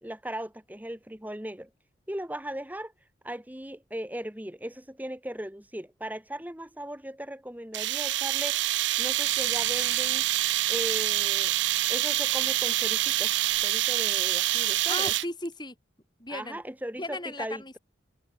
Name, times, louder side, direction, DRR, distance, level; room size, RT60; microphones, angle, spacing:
voice 1, 0.0-1.7 2.1-2.9 3.2-10.3 10.7-11.5 11.9-13.3 13.6-15.1 16.3-17.8, right 1 dB, 10° right, 1.6 m, -38 dB
sound 1, 7.7-15.5, right 15 dB, 70° right, 0.6 m, -26 dB
voice 2, 14.9-15.7 16.2-16.6 17.0-17.8, left 2 dB, 20° left, 6.3 m, -36 dB
head